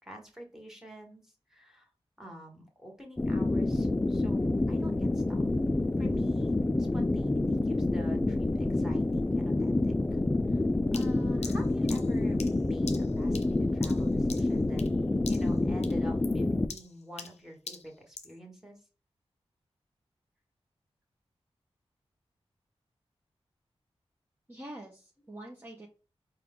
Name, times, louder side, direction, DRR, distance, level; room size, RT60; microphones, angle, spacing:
voice 1, 0.0-1.9 2.2-5.4 6.0-10.2 10.5-14.8 15.3-18.8, right 1 dB, 5° right, 1 dB, 1.5 m, -48 dB
sound 1, 3.2-16.7, left 2 dB, 15° left, 0.3 m, -28 dB
sound 2, 10.9-15.0 15.2-15.6 15.8-18.4, left 5 dB, 85° left, 0.6 m, -45 dB
voice 2, 24.5-25.9, right 1 dB, 20° right, -1 dB, 0.8 m, -45 dB
4.6 x 2.4 x 3.6 m, 0.34 s
cardioid pair, 45°, 11 cm